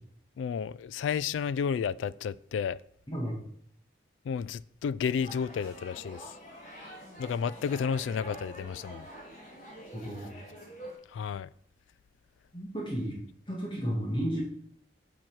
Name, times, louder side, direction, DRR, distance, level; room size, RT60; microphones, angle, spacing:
voice 1, 0.4-2.8 4.3-6.3 7.2-9.1 11.1-11.5, left 6 dB, 90° left, 0.3 m, -32 dB
sound 1, 5.0-10.9, right 1 dB, 50° left, 3.1 m, -46 dB
voice 2, 9.9-10.3 12.5-13.2 13.5-14.4, equal, 25° left, 1.8 m, -33 dB
7.5 x 5.8 x 4.6 m
head